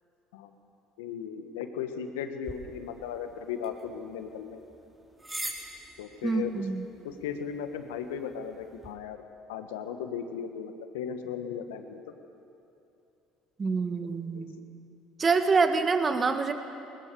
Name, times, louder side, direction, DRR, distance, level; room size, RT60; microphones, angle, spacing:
voice 1, 1.0-4.6 6.0-6.5 7.0-9.2 9.5-12.0 14.3-14.5, left 7 dB, 90° left, 7 dB, 1.5 m, -36 dB
sound 1, 2.4-8.9, right 1 dB, 15° right, 4.5 m, -45 dB
voice 2, 6.2-6.9 13.6-14.6 15.2-16.5, right 4 dB, 30° right, 8 dB, 1.7 m, -26 dB
20.5 x 20.0 x 7.0 m, 2.7 s
supercardioid pair, 75°, 0 cm